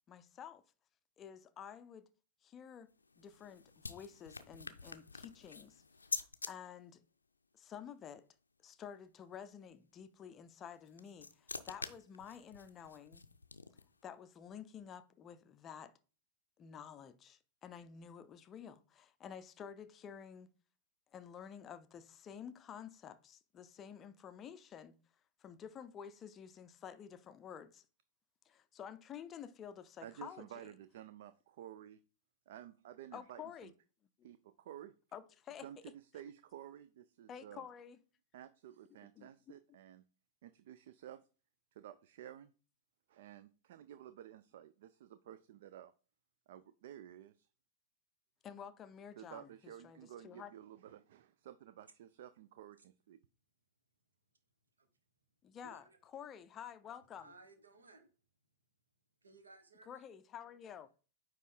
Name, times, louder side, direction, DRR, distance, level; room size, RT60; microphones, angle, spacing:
voice 1, 0.1-0.6 1.2-2.1 2.4-2.9 3.2-5.8 6.5-7.0 7.5-8.3 8.6-13.2 14.0-15.9 16.6-20.5 21.1-25.0 25.4-27.9 28.5-30.7 33.1-33.7 35.1-35.9 37.3-38.0 39.2-39.5 48.4-50.5 55.4-57.3 59.9-60.9, left 8 dB, 25° left, 0.5 m, -51 dB
sound 1, 2.9-6.5 10.7-14.0, left 4 dB, 75° left, 0.5 m, -46 dB
voice 2, 30.0-32.0 32.5-33.7 34.2-34.9 35.6-37.6 38.3-40.0 40.4-41.2 41.7-42.5 43.1-45.9 46.5-47.5 49.2-53.2, right 11 dB, 50° right, 0.3 m, -53 dB
voice 3, 55.6-56.0 57.2-58.1 59.2-60.0, right 2 dB, 75° right, 1.2 m, -59 dB
9.1 x 3.0 x 3.8 m
figure-of-eight pair, 100°, 0 cm